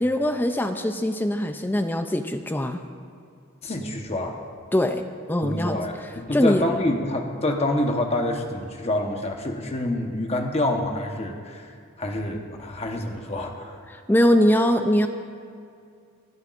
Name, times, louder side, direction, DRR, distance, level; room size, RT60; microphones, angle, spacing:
voice 1, 0.0-2.8 4.7-5.0 5.3-5.8 6.3-6.6 13.9-15.1, left 1 dB, 10° left, 7 dB, 0.4 m, -22 dB
voice 2, 3.6-4.4 5.4-13.8, left 1 dB, 30° left, 3 dB, 1.0 m, -27 dB
26.5 x 9.6 x 2.5 m, 2.3 s
head